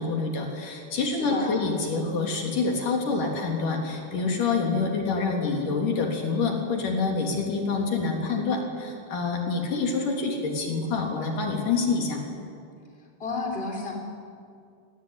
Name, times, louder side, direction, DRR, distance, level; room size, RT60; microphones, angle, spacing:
voice 1, 0.0-12.2, left 4 dB, 80° left, 1 dB, 5.1 m, -27 dB
voice 2, 1.1-1.7 13.2-13.9, left 3 dB, 15° left, 1 dB, 4.0 m, -32 dB
28.0 x 19.0 x 9.7 m, 2.3 s
omnidirectional pair, 3.6 m